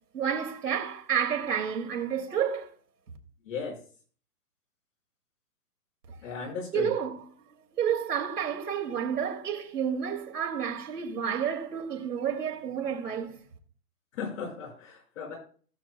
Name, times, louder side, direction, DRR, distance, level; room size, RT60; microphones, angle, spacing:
voice 1, 0.1-2.7 6.1-6.2 6.7-7.2 7.7-13.4, right 8 dB, 80° right, 2.8 m, -30 dB
voice 2, 3.4-3.8 6.2-6.9 14.1-15.3, left 5 dB, 55° left, 5.4 m, -36 dB
19.0 x 6.3 x 2.3 m
hypercardioid pair, 145°, 46 cm